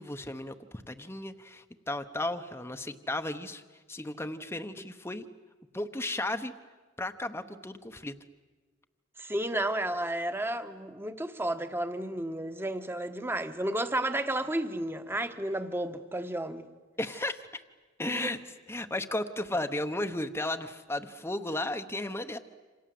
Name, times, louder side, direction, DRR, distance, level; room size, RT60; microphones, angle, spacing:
voice 1, 0.0-3.6 3.9-5.3 5.7-6.5 7.0-8.2 17.0-17.6 18.0-18.4 18.7-22.4, left 1 dB, 15° left, 0.9 m, -34 dB
voice 2, 9.2-16.6 18.1-18.3, right 1 dB, 10° right, 1.3 m, -32 dB
28.0 x 27.0 x 7.7 m
head